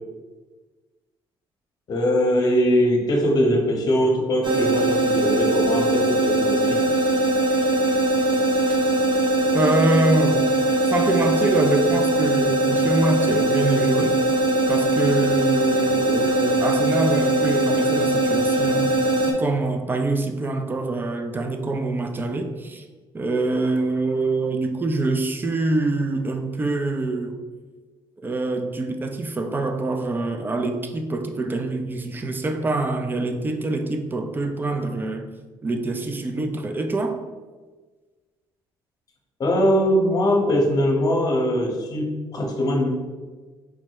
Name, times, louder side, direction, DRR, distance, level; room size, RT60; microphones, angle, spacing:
voice 1, 1.9-6.8 39.4-42.9, equal, 40° left, 2 dB, 0.9 m, -21 dB
sound 1, 4.4-19.3, right 1 dB, 55° right, 0.9 m, -21 dB
voice 2, 9.5-10.4 10.8-14.2 14.7-18.9 19.2-22.8 23.1-27.4 28.2-35.3 35.6-37.2, right 2 dB, 20° right, 6 dB, 0.4 m, -25 dB
4.9 x 2.1 x 4.6 m, 1.3 s
cardioid pair, 105°, 10 cm